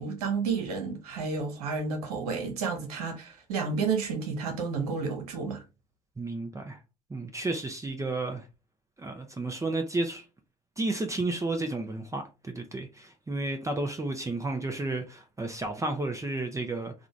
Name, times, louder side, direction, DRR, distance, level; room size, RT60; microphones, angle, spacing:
voice 1, 0.0-5.6, right 5 dB, 75° right, 1.0 m, -31 dB
voice 2, 6.2-6.8 7.1-8.5 9.0-10.2 10.8-16.9, right 2 dB, 15° right, 0.7 m, -32 dB
3.7 x 2.3 x 3.1 m
hypercardioid pair, 60°, 19 cm